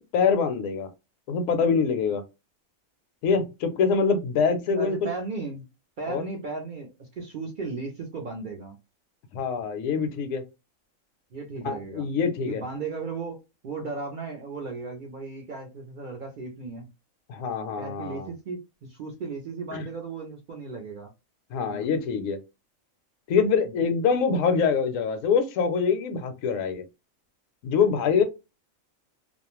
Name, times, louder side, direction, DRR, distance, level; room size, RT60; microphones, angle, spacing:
voice 1, 0.1-0.9 1.3-2.2 3.2-5.0 6.1-6.2 9.3-10.4 11.6-12.6 17.3-18.3 19.7-19.8 21.5-22.4 23.3-26.8 27.6-28.2, left 5 dB, 75° left, 9 dB, 0.9 m, -24 dB
voice 2, 4.7-5.7 6.0-8.7 11.3-12.1 12.4-13.4 13.6-16.9 17.8-21.1 21.7-21.9 23.6-23.7 28.1-28.2, right 4 dB, 65° right, 1 dB, 0.5 m, -36 dB
2.4 x 2.1 x 2.9 m, 0.26 s
omnidirectional pair, 1.4 m